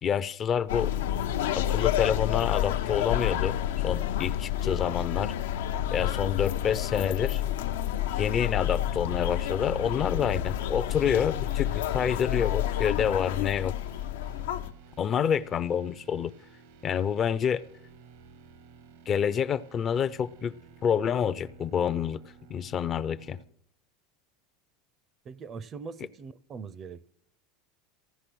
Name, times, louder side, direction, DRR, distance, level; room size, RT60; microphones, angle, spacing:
voice 1, 0.0-0.9 1.6-3.6 3.8-5.3 5.9-7.4 8.1-13.7 15.0-16.3 16.8-17.6 19.1-20.5 20.8-22.2 22.5-23.4, left 8 dB, 30° left, 0.4 m, -28 dB
sound 1, 0.7-14.7, left 11 dB, 85° left, 0.6 m, -29 dB
sound 2, 11.2-23.4, right 6 dB, 75° right, 1.0 m, -54 dB
voice 2, 25.2-27.1, right 5 dB, 30° right, 0.5 m, -41 dB
15.5 x 9.7 x 6.1 m
supercardioid pair, 135°, 0 cm